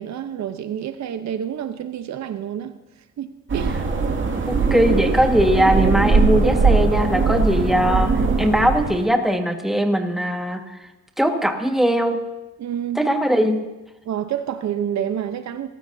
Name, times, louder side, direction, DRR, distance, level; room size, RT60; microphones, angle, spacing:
voice 1, 0.0-2.7 3.2-3.8 12.6-13.0 14.0-15.7, right 9 dB, 65° right, 10 dB, 0.9 m, -28 dB
sound 1, 3.5-9.0, right 4 dB, 40° right, 2.3 m, -20 dB
voice 2, 4.5-8.1 8.4-10.6 11.2-12.2 13.0-13.6, equal, ahead, 4 dB, 1.7 m, -20 dB
27.5 x 14.0 x 2.8 m, 1.0 s
cardioid pair, 90°, 30 cm